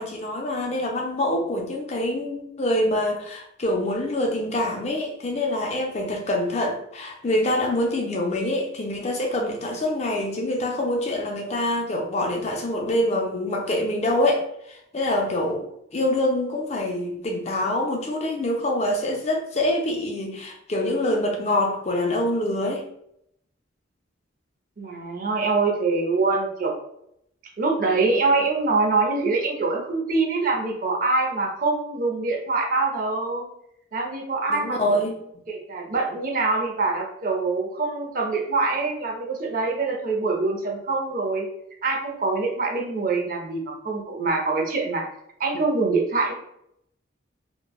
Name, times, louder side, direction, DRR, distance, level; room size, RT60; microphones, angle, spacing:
voice 1, 0.0-14.4 14.7-15.6 15.9-22.8 34.5-35.2, left 1 dB, 35° left, 2 dB, 0.4 m, -25 dB
voice 2, 24.8-26.7 27.6-33.4 33.9-35.0 35.5-41.5 41.8-45.0 45.4-46.3, right 3 dB, 45° right, 0 dB, 0.5 m, -24 dB
3.1 x 2.1 x 2.3 m, 0.76 s
head